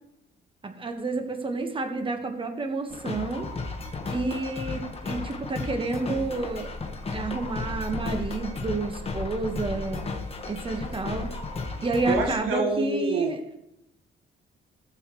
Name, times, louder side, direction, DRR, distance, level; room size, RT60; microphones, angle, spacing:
voice 1, 0.6-3.5 4.1-6.7 7.1-10.0 10.5-11.3 11.8-13.4, right 3 dB, 25° right, 5 dB, 1.5 m, -30 dB
sound 1, 2.9-12.3, left 3 dB, 30° left, 1.5 m, -34 dB
voice 2, 12.1-13.6, right 3 dB, 90° right, 2 dB, 1.9 m, -27 dB
18.0 x 7.7 x 3.2 m, 0.81 s
cardioid pair, 90°, 20 cm